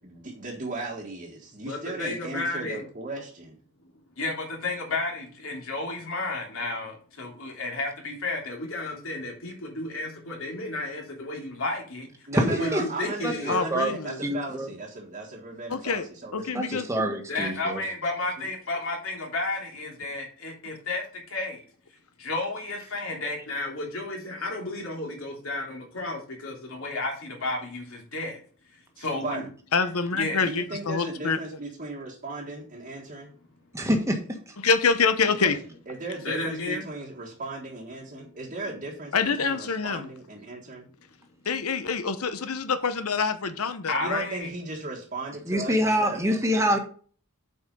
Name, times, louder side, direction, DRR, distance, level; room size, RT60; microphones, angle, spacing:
voice 1, 0.0-3.6 12.3-16.4 18.4-18.5 29.0-29.5 30.4-33.3 35.2-35.6 35.9-40.9 44.0-46.8, right 2 dB, 40° right, -3 dB, 1.6 m, -36 dB
voice 2, 1.7-2.8 4.2-12.1 12.3-13.7 17.3-21.6 22.2-28.4 29.0-29.4 30.1-30.4 36.2-36.8 38.1-38.2 43.9-44.5, left 2 dB, 65° left, 0 dB, 3.2 m, -32 dB
voice 3, 12.3-12.8 13.2-13.9 14.2-14.7 16.5-17.8 33.7-34.2 45.5-46.8, equal, 15° right, 3 dB, 1.5 m, -25 dB
voice 4, 13.5-14.2 15.7-16.1 16.3-17.1 29.7-31.4 34.6-35.6 39.1-40.1 41.5-44.2, left 5 dB, 90° left, 10 dB, 0.9 m, -26 dB
8.2 x 5.4 x 5.3 m, 0.43 s
head